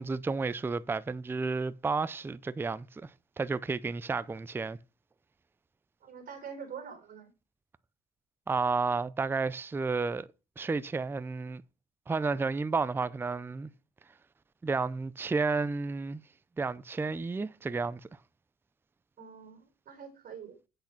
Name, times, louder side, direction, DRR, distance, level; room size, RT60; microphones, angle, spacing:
voice 1, 0.0-3.1 3.4-4.8 8.5-10.3 10.6-11.6 12.1-13.7 14.6-16.2 16.6-18.0, right 4 dB, 15° right, 0.5 m, -31 dB
voice 2, 6.0-7.3 19.2-20.6, right 6 dB, 55° right, 3.8 m, -45 dB
8.4 x 6.5 x 5.9 m
cardioid pair, 110°, 17 cm